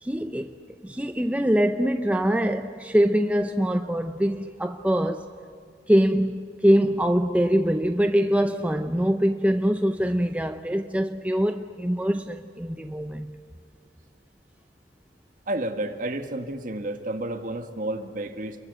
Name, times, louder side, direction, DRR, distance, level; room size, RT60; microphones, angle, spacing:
voice 1, 0.0-5.3 5.9-13.4, equal, 10° right, 0.6 m, -23 dB
voice 2, 15.5-18.6, right 1 dB, 45° right, 1.7 m, -31 dB
28.5 x 22.5 x 8.1 m
head